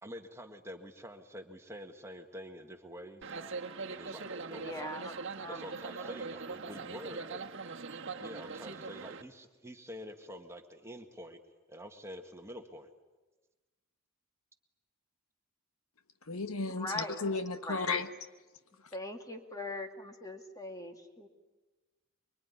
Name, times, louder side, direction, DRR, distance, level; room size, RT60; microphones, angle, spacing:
voice 1, 0.0-3.4 3.9-4.9 5.5-7.4 8.2-11.4 11.7-12.9, equal, 15° right, 4 dB, 1.8 m, -47 dB
sound 1, 3.2-9.2, right 4 dB, 60° right, 1.5 m, -42 dB
voice 2, 4.5-6.1 16.7-17.3 17.6-18.0 18.9-21.3, left 1 dB, 15° left, 4 dB, 2.4 m, -42 dB
voice 3, 16.3-18.1, left 4 dB, 75° left, 9 dB, 1.3 m, -34 dB
24.5 x 24.0 x 9.8 m, 1.2 s
head